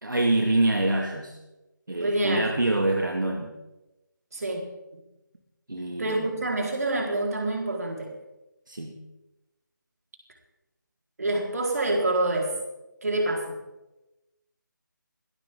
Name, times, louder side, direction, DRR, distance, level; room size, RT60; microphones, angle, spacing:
voice 1, 0.0-1.4 1.9-3.5 5.7-6.3 8.7-8.9, right 2 dB, 70° right, 1 dB, 2.4 m, -25 dB
voice 2, 2.0-2.5 4.3-4.6 6.0-8.1 11.2-12.5 13.0-13.6, right 2 dB, 50° right, 0 dB, 4.4 m, -27 dB
20.5 x 16.5 x 3.8 m, 1.0 s
figure-of-eight pair, 155°, 11 cm